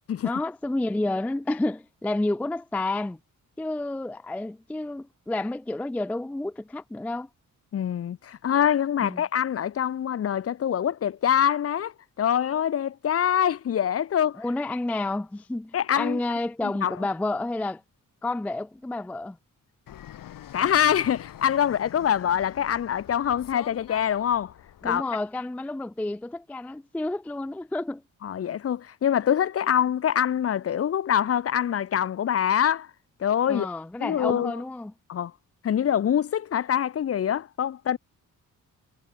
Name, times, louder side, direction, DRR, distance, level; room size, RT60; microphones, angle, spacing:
voice 1, 0.2-3.2 3.6-7.3 9.0-9.2 14.4-17.8 18.2-19.4 24.8-28.0 33.5-34.9, left 2 dB, 5° left, 0.3 m, -30 dB
voice 2, 7.7-14.4 15.7-16.2 16.8-17.0 20.5-24.5 24.8-25.0 28.2-32.9 33.2-33.7 34.0-34.5 35.1-35.3 35.6-38.0, left 9 dB, 45° left, 0.7 m, -24 dB
Fixed-wing aircraft airplane, 19.9-25.0, left 11 dB, 85° left, 5.1 m, -45 dB
wide cardioid pair, 140°, 33 cm